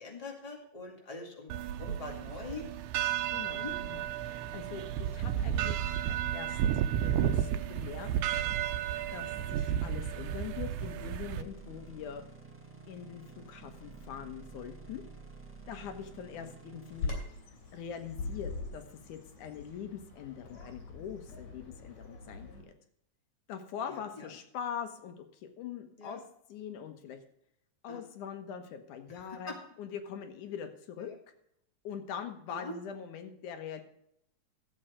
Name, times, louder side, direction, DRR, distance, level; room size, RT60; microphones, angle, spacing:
voice 1, 0.0-1.5 1.8-2.7 3.5-3.7 24.2-24.3 26.0-26.2 27.9-28.0 29.1-29.2 29.5-29.6 31.1-31.2 32.5-32.7, left 3 dB, 15° left, 1 dB, 1.8 m, -43 dB
sound 1, 1.5-11.4, right 10 dB, 90° right, 2.1 m, -32 dB
voice 2, 3.3-6.6 7.0-8.1 9.1-12.2 12.9-15.0 15.7-17.1 17.7-22.7 23.5-26.2 26.5-27.2 27.8-31.1 31.8-33.8, left 8 dB, 85° left, 7 dB, 2.7 m, -43 dB
sound 2, 3.7-17.2, right 4 dB, 10° right, 0.9 m, -50 dB
Bird vocalization bird call bird song, 16.9-22.6, left 3 dB, 65° left, 4.4 m, -42 dB
13.5 x 7.8 x 5.0 m, 0.74 s
omnidirectional pair, 3.4 m